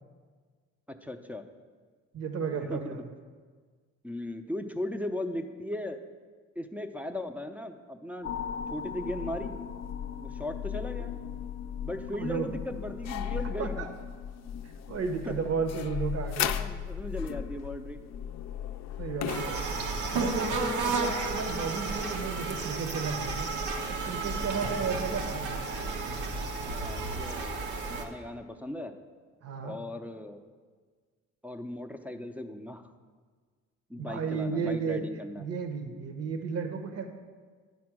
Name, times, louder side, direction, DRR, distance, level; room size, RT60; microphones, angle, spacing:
voice 1, 1.0-1.4 2.5-3.0 4.0-6.0 6.6-8.3 8.7-9.5 10.2-11.1 11.8-13.9 15.3-15.4 16.4-18.0 24.5-24.7 26.6-27.6 27.9-28.9 29.6-30.4 31.4-32.9 33.9-35.5, left 1 dB, 5° right, 3 dB, 0.5 m, -37 dB
voice 2, 2.1-3.0 12.1-12.5 13.6-13.8 14.9-16.5 19.0-19.6 20.1-23.5 23.9-25.6 29.4-29.8 34.0-35.0 35.4-37.1, right 5 dB, 55° right, 6 dB, 0.9 m, -33 dB
sound 1, 8.2-19.5, left 9 dB, 60° left, 0.5 m, -36 dB
sound 2, 19.3-28.1, right 3 dB, 80° right, 1.0 m, -32 dB
9.5 x 4.2 x 6.0 m, 1.5 s
cardioid pair, 90°, 30 cm